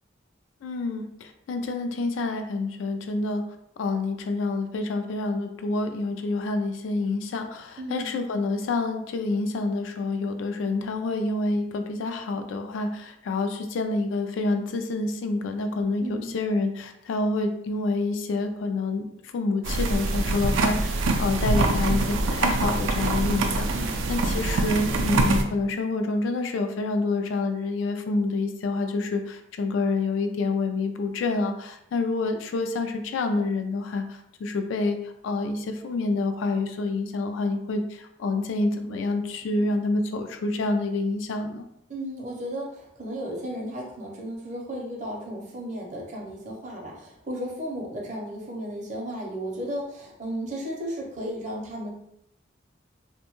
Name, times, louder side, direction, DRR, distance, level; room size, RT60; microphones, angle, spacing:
voice 1, 0.6-3.4 3.8-41.6, left 3 dB, 80° left, 6 dB, 0.3 m, -27 dB
voice 2, 7.8-8.2 16.0-16.3 23.7-24.0 39.4-39.7 41.9-51.9, equal, 40° right, -1 dB, 0.6 m, -34 dB
sound 1, 19.6-25.4, right 2 dB, 85° right, 0.3 m, -24 dB
2.5 x 2.2 x 2.9 m, 0.77 s
head